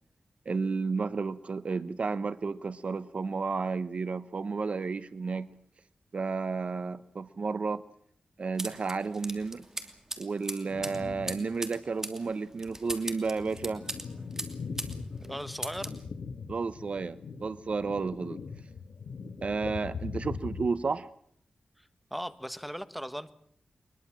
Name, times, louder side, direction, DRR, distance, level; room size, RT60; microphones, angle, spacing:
voice 1, 0.5-5.5 6.1-7.8 8.4-9.6 10.2-13.8 16.5-18.4 19.4-21.1, right 4 dB, 55° right, 0.9 m, -32 dB
sound 1, 8.6-15.0 15.2-16.0, right 1 dB, 20° right, 2.9 m, -39 dB
sound 2, 10.7-11.6 12.0-12.1 12.8-20.7, left 5 dB, 75° left, 1.5 m, -41 dB
voice 2, 15.2-16.0 21.8-23.3, equal, ahead, 1.4 m, -38 dB
22.5 x 22.0 x 7.4 m
wide cardioid pair, 95°, 2 cm